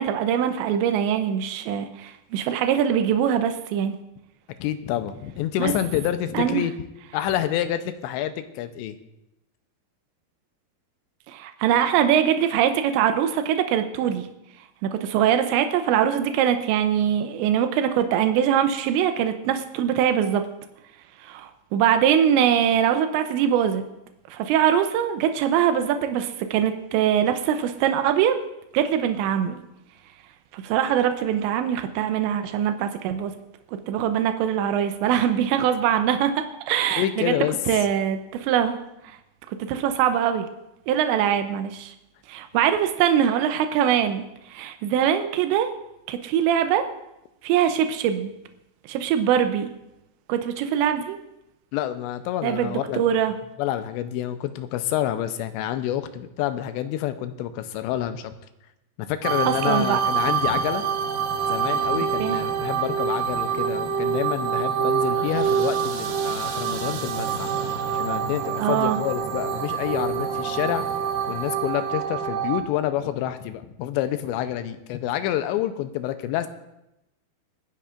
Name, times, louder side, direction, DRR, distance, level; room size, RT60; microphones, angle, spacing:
voice 1, 0.0-4.0 5.6-5.7 6.3-6.6 11.3-14.3 14.8-20.5 21.2-23.8 24.3-28.4 28.7-29.6 30.5-33.3 33.7-37.4 37.7-38.8 39.0-39.2 39.5-40.5 40.9-41.9 42.3-45.7 46.1-46.8 47.4-48.3 48.9-49.7 50.3-51.2 52.4-53.3 59.5-60.0 62.2-62.4 68.6-69.0, right 9 dB, 90° right, 8 dB, 3.0 m, -22 dB
voice 2, 4.6-6.7 7.1-9.0 37.0-37.6 51.7-53.0 53.6-58.3 59.0-60.8 61.5-67.5 67.9-70.8 71.3-76.5, left 12 dB, 85° left, 10 dB, 2.9 m, -28 dB
sound 1, 59.2-72.6, right 7 dB, 70° right, 2.3 m, -26 dB
26.0 x 10.0 x 2.5 m, 0.89 s
omnidirectional pair, 5.1 m